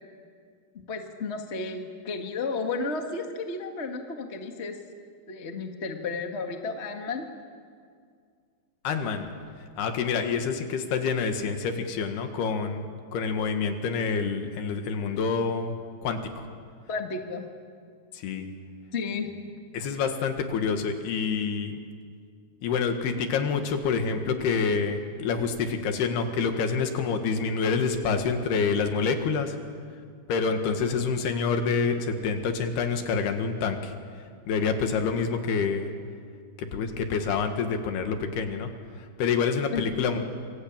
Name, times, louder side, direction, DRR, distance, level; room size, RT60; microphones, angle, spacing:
voice 1, 0.9-4.8 5.3-7.2 16.9-17.5 18.9-19.3 39.7-39.9, left 4 dB, 50° left, 4 dB, 0.8 m, -32 dB
voice 2, 8.8-9.3 9.8-15.7 16.0-16.5 18.1-18.5 19.7-21.8 22.6-29.6 30.3-33.9 34.5-35.9 36.6-38.7 39.0-40.2, left 5 dB, 70° left, 6 dB, 3.7 m, -27 dB
27.0 x 23.5 x 8.9 m, 2.1 s
omnidirectional pair, 4.8 m